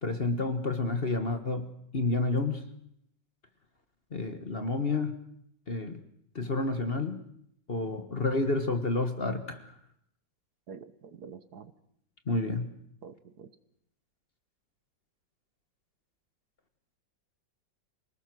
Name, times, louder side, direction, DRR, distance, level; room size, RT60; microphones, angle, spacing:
voice 1, 0.0-2.6 4.1-5.2 5.7-6.0 6.3-7.2 7.7-9.7 12.3-12.7, left 3 dB, 35° left, 1.4 m, -30 dB
voice 2, 10.7-11.7 13.0-13.5, right 6 dB, 60° right, 1.5 m, -47 dB
27.0 x 19.0 x 6.2 m
omnidirectional pair, 2.0 m